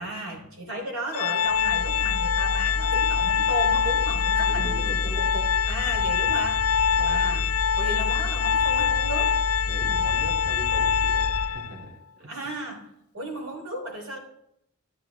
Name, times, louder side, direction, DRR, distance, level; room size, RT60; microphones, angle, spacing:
voice 1, 0.0-7.5 7.8-9.3 12.3-14.2, right 1 dB, 75° right, 1 dB, 3.2 m, -35 dB
Organ, 1.1-11.8, left 7 dB, 75° left, 0.3 m, -25 dB
sound 1, 1.4-11.5, left 1 dB, 40° left, 0.8 m, -31 dB
voice 2, 4.5-5.2 6.9-7.2 9.6-12.3, right 1 dB, 55° right, -1 dB, 2.6 m, -40 dB
12.5 x 9.8 x 3.3 m, 0.78 s
head